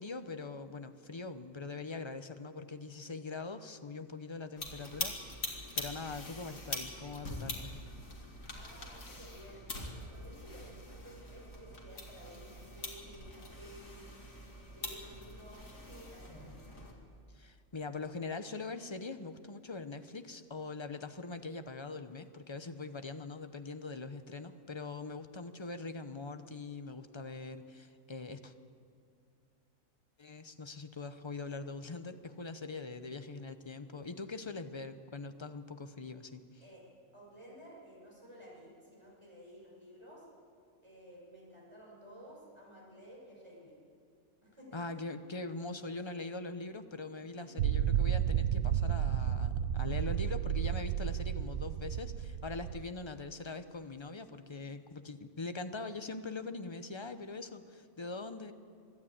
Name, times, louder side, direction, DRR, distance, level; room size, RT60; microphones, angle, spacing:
voice 1, 0.0-5.2 5.7-7.8 17.3-28.5 30.2-36.6 44.7-58.5, left 3 dB, 25° left, 9 dB, 0.7 m, -42 dB
sound 1, 4.6-16.9, left 2 dB, 75° left, 2.8 m, -44 dB
voice 2, 8.5-14.1 14.7-16.5 36.6-36.8 37.1-40.3 40.8-43.8 44.4-44.8 47.3-47.9, equal, 20° right, -4 dB, 6.5 m, -54 dB
sound 2, 47.6-52.8, right 10 dB, 75° right, 1.1 m, -32 dB
24.0 x 12.5 x 8.8 m, 2.3 s
omnidirectional pair, 1.4 m